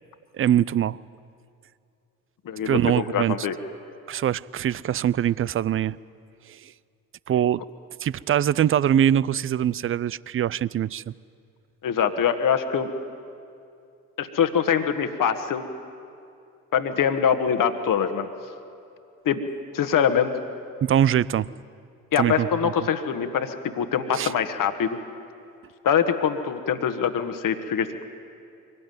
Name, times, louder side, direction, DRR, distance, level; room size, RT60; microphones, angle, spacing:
voice 1, 0.3-1.0 2.7-3.4 4.1-6.0 6.5-6.7 7.3-7.6 8.0-11.1 20.8-21.5 22.2-22.7 24.1-24.3, right 10 dB, 30° right, 21 dB, 0.5 m, -23 dB
voice 2, 2.4-3.5 11.8-12.9 14.2-15.6 16.7-18.3 19.2-19.4 19.7-20.3 22.1-25.0 25.8-28.0, left 8 dB, 50° left, 8 dB, 1.6 m, -24 dB
23.5 x 18.0 x 9.3 m, 2.5 s
hypercardioid pair, 45°, 41 cm